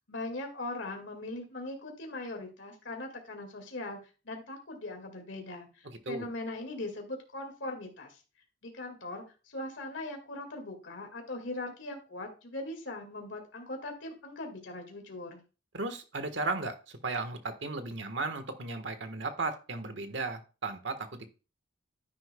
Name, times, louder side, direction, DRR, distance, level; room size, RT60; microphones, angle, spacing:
voice 1, 0.1-4.0 4.2-8.2 8.6-15.4, left 2 dB, 80° left, 2.0 m, -40 dB
voice 2, 5.8-6.3 15.7-21.3, right 3 dB, 70° right, 1.3 m, -35 dB
10.5 x 9.9 x 2.2 m
head